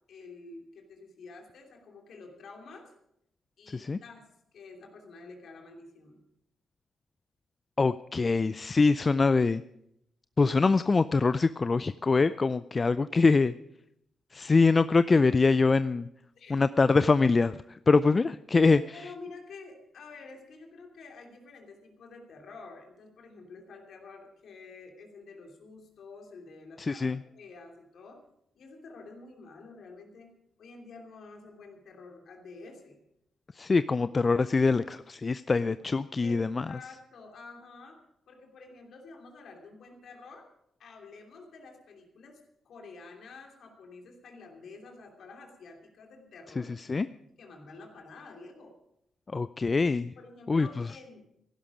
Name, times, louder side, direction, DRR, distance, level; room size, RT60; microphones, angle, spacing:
voice 1, 0.1-2.9 3.6-4.3 4.5-6.2 16.4-16.6 17.9-18.0 18.7-28.2 28.5-30.3 30.6-33.0 35.6-35.9 36.2-38.0 38.3-40.5 40.8-42.4 42.6-48.7 50.2-51.3, left 3 dB, 65° left, 2 dB, 2.9 m, -49 dB
voice 2, 7.8-9.6 10.4-13.5 14.3-16.1 16.5-18.8 26.8-27.2 33.6-36.8 46.8-47.1 49.3-50.1 50.5-50.9, left 4 dB, 40° left, 14 dB, 0.4 m, -24 dB
15.5 x 12.0 x 5.0 m, 0.79 s
hypercardioid pair, 40°, 0 cm